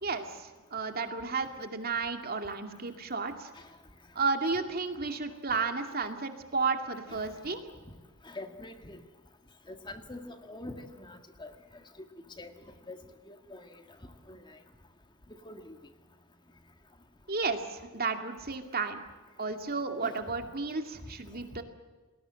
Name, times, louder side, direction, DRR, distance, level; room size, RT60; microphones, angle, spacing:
voice 1, 0.0-3.5 4.1-7.6 17.3-19.0 19.4-21.6, right 4 dB, 45° right, 6 dB, 2.3 m, -33 dB
voice 2, 8.2-9.0 9.7-11.5 12.4-12.5 12.9-13.0 13.3-13.8 14.3-14.6 15.4-15.8 20.0-20.2 21.6-21.7, left 2 dB, 20° left, 6 dB, 1.8 m, -44 dB
29.5 x 20.5 x 7.7 m, 1.3 s
head